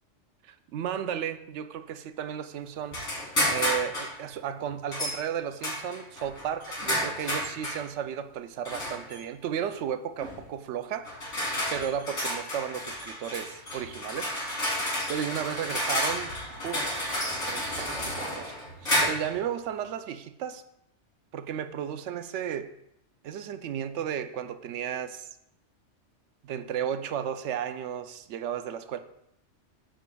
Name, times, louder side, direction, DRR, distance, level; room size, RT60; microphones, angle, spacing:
voice 1, 0.4-3.1 3.5-11.1 11.7-14.3 15.1-20.6 21.3-22.7 23.2-25.3 26.4-29.0, right 9 dB, 80° right, 0.9 m, -34 dB
sound 1, 2.9-4.1 4.9-5.2 5.6-7.8 8.6-9.2 10.2-10.4 11.0-19.4, left 1 dB, 90° left, 2.6 m, -31 dB
12.0 x 5.0 x 2.3 m
omnidirectional pair, 1.2 m